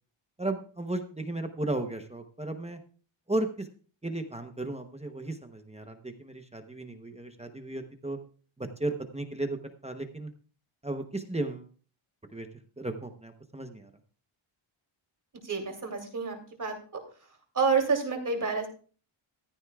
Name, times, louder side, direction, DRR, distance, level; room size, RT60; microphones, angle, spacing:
voice 1, 0.4-2.8 3.3-3.7 4.0-8.2 8.6-10.3 10.8-11.7 12.3-12.5 12.8-13.9, right 2 dB, 15° right, 6 dB, 0.8 m, -35 dB
voice 2, 15.4-17.0 17.5-18.7, right 5 dB, 40° right, 3 dB, 2.8 m, -29 dB
14.5 x 13.0 x 2.3 m, 0.39 s
wide cardioid pair, 175°, 50 cm